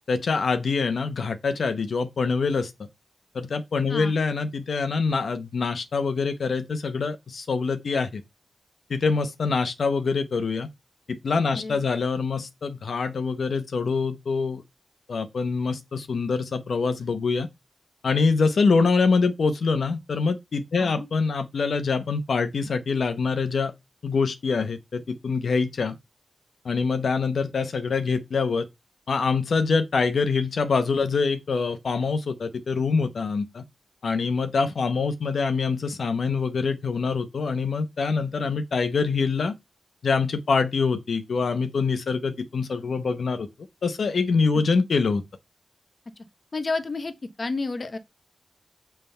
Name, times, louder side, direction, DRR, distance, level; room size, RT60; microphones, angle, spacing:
voice 1, 0.1-2.7 3.3-8.2 8.9-10.7 11.1-14.6 15.1-17.5 18.0-23.7 24.0-26.0 26.6-28.7 29.1-33.6 34.0-39.5 40.0-43.5 43.8-45.2, left 4 dB, 80° left, 0.8 m, -25 dB
voice 2, 46.5-48.0, left 3 dB, 45° left, 1.0 m, -30 dB
7.4 x 3.5 x 5.5 m
wide cardioid pair, 95°, 0 cm